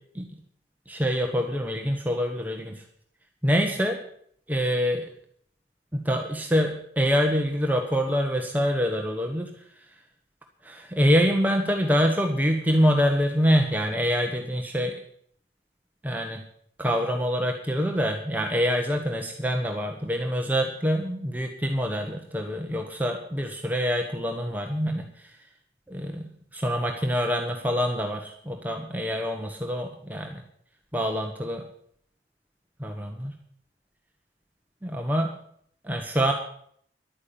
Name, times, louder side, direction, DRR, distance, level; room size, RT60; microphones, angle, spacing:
voice 1, 0.9-2.8 3.4-4.0 4.5-5.1 5.9-9.5 10.6-14.9 16.0-16.4 16.8-25.3 25.9-30.4 30.9-31.6 32.8-33.3 34.8-35.3 35.8-36.3, equal, 10° right, 2 dB, 1.2 m, -25 dB
11.5 x 9.6 x 8.6 m, 0.65 s
head